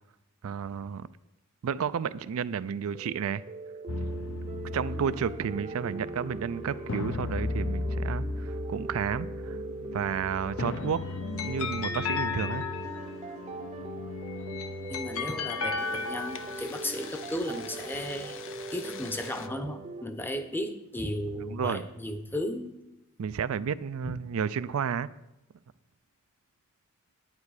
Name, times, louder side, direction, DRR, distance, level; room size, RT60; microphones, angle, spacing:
voice 1, 0.4-1.1 1.6-3.4 4.7-9.6 9.9-11.0 11.3-12.6 21.5-21.8 23.2-25.1, right 7 dB, 70° right, 14 dB, 0.4 m, -31 dB
sound 1, 2.9-20.0, right 3 dB, 30° right, 0.6 m, -41 dB
sound 2, 3.9-19.5, left 2 dB, 60° left, 0.6 m, -38 dB
sound 3, 10.9-13.3 14.3-16.7, left 5 dB, 75° left, 1.0 m, -34 dB
voice 2, 14.9-18.4 18.7-22.7 24.0-24.2, left 1 dB, 10° left, 7 dB, 0.7 m, -35 dB
9.4 x 9.3 x 4.9 m, 0.90 s
head